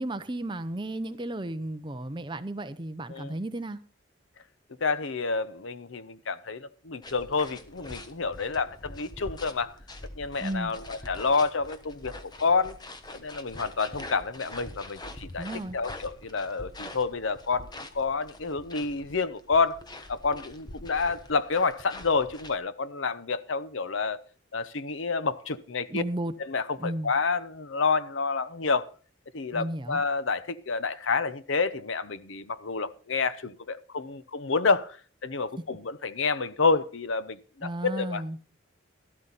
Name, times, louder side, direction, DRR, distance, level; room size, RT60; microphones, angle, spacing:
voice 1, 0.0-3.8 10.4-10.7 15.4-15.8 25.9-26.3 26.8-27.1 29.5-30.0 37.6-38.4, right 1 dB, 25° right, 0.7 m, -33 dB
voice 2, 4.8-9.8 10.2-12.8 13.1-15.5 15.7-19.8 20.1-24.2 24.5-26.0 26.4-28.9 29.3-35.0 35.2-38.2, left 4 dB, 85° left, 0.8 m, -29 dB
sound 1, 7.0-22.6, left 1 dB, 20° left, 1.0 m, -44 dB
12.5 x 12.5 x 4.1 m
head